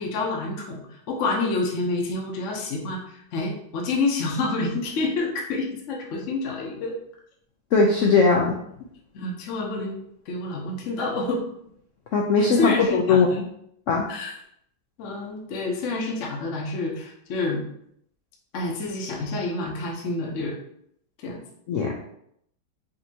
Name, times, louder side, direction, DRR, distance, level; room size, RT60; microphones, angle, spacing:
voice 1, 0.0-6.9 9.1-10.0 10.3-11.4 12.4-13.4 14.1-14.3 15.0-17.6 18.5-20.6 21.2-21.4, left 3 dB, 55° left, -1 dB, 0.9 m, -28 dB
voice 2, 7.7-8.6 12.1-13.3 13.9-14.1 21.7-21.9, left 4 dB, 85° left, -1 dB, 0.6 m, -19 dB
5.2 x 2.7 x 2.8 m, 0.71 s
omnidirectional pair, 1.9 m